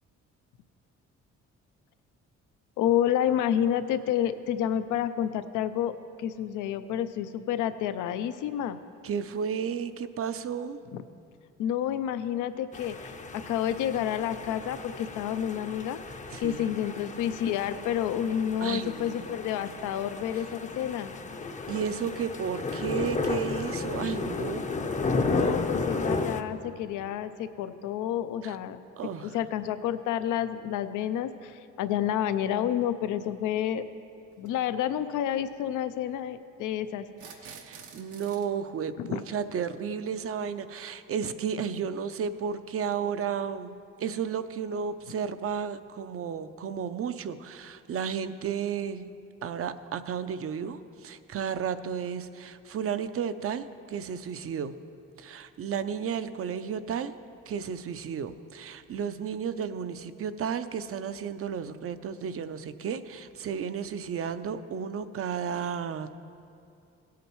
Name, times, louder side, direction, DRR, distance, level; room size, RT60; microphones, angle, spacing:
voice 1, 2.8-8.8 10.9-11.0 11.6-16.0 16.4-21.1 25.2-28.8 29.2-33.8 34.4-37.6 39.0-39.2, left 10 dB, 85° left, 12 dB, 0.5 m, -29 dB
voice 2, 9.0-10.8 16.3-16.7 18.6-19.4 21.7-24.6 28.4-28.6 29.0-29.4 37.4-49.1 49.4-54.8 55.2-57.1 57.5-66.3, right 7 dB, 50° right, 11 dB, 0.5 m, -33 dB
sound 1, 12.7-26.4, left 3 dB, 25° left, 0.5 m, -33 dB
sound 2, 32.8-32.9 34.3-34.5 37.1-38.5, right 6 dB, 90° right, 1.0 m, -48 dB
17.0 x 8.3 x 3.1 m, 2.5 s
cardioid pair, 90°, 30 cm